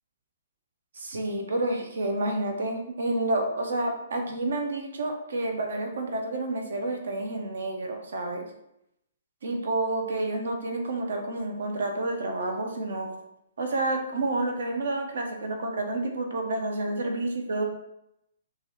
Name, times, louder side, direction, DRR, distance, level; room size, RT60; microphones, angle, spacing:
voice 1, 0.9-8.5 9.4-13.1 13.6-17.6, right 2 dB, 70° right, 4 dB, 0.5 m, -29 dB
2.7 x 2.3 x 3.2 m, 0.82 s
figure-of-eight pair, 125°, 0 cm